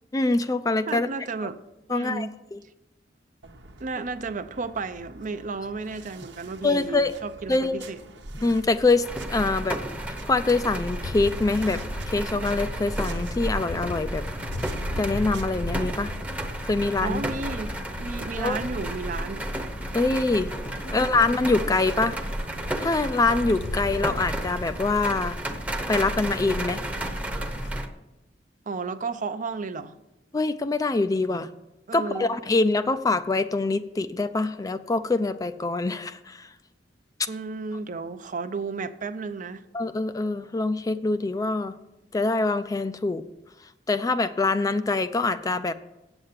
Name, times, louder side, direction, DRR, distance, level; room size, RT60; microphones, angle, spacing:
voice 1, 0.1-1.1 1.9-2.6 6.6-7.1 7.5-7.8 8.4-9.8 10.3-11.8 12.1-14.2 15.0-16.1 16.6-17.2 18.4-18.6 19.9-20.5 20.9-22.2 22.8-25.4 25.9-26.8 30.3-31.5 31.9-36.5 39.7-41.7 42.1-43.2 43.9-45.7, left 3 dB, 20° left, 0.4 m, -24 dB
voice 2, 0.9-1.6 1.9-2.3 3.8-8.0 17.0-19.5 20.8-21.0 28.7-29.9 31.9-32.3 37.3-39.6, right 4 dB, 45° right, 0.5 m, -33 dB
sound 1, 3.4-16.0, right 2 dB, 85° right, 1.0 m, -47 dB
sound 2, 9.0-27.9, right 1 dB, 10° right, 0.8 m, -32 dB
sound 3, 11.0-27.7, left 1 dB, 65° left, 0.7 m, -38 dB
8.0 x 7.6 x 7.3 m
head